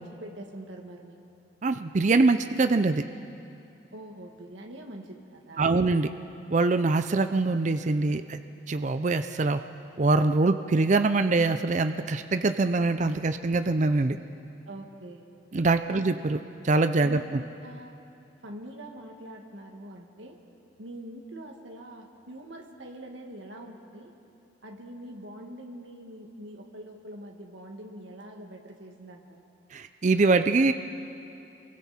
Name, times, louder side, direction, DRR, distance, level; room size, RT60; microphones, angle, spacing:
voice 1, 0.1-1.2 3.9-6.1 14.7-15.3 15.9-16.0 17.0-17.9 18.4-20.4 20.8-24.1 24.6-29.4, right 1 dB, 85° right, 2 dB, 2.0 m, -44 dB
voice 2, 1.6-3.0 5.6-6.1 6.5-8.4 8.7-9.6 10.0-14.2 15.5-16.4 16.6-17.4 29.7-30.7, right 3 dB, 40° right, 9 dB, 0.5 m, -23 dB
27.0 x 22.5 x 4.3 m, 2.7 s
head